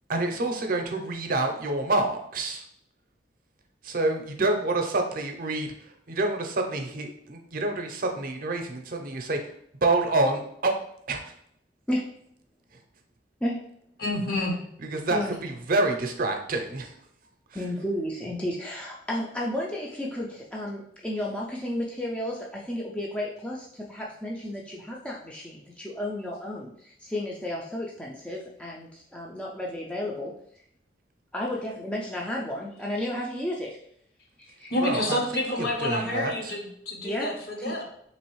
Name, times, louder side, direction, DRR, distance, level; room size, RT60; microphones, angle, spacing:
voice 1, 0.1-2.6 3.8-9.4 9.8-10.8 11.1-11.3 14.9-17.0 34.8-36.5, right 2 dB, 50° right, 4 dB, 0.6 m, -27 dB
voice 2, 14.0-14.6 34.7-37.8, left 1 dB, 60° left, 0 dB, 0.9 m, -28 dB
voice 3, 17.5-30.3 31.3-33.8 34.4-34.7 37.0-37.8, left 1 dB, 5° left, -3 dB, 0.4 m, -33 dB
3.8 x 3.0 x 3.0 m, 0.68 s
head